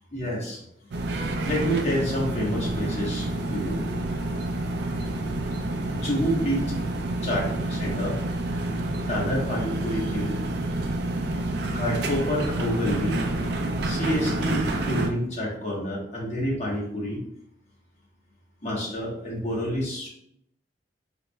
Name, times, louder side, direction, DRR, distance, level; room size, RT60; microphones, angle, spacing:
voice 1, 0.1-0.6 1.4-3.8 5.9-6.7 7.2-8.2 9.1-10.4 11.7-13.1 13.8-17.2 18.6-20.1, equal, 40° left, -5 dB, 1.2 m, -28 dB
sound 1, 0.9-15.1, right 2 dB, 65° right, 0.4 m, -28 dB
3.5 x 3.0 x 2.2 m, 0.73 s
head